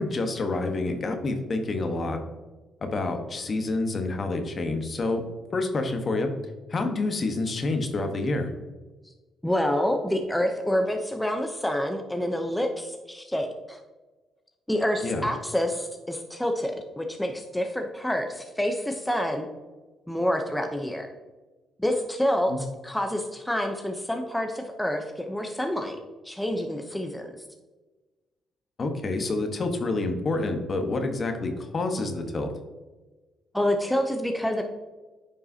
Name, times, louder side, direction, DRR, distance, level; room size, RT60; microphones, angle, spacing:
voice 1, 0.0-2.2 2.8-5.2 5.5-6.3 6.7-8.5 15.0-15.2 22.5-22.6 28.8-32.5, left 2 dB, 40° left, 5 dB, 1.2 m, -28 dB
voice 2, 9.4-13.8 14.7-19.5 20.1-21.1 21.8-26.0 26.2-27.3 33.5-34.6, equal, 5° left, 4 dB, 0.7 m, -27 dB
9.7 x 5.3 x 2.8 m, 1.2 s
cardioid pair, 90°, 0 cm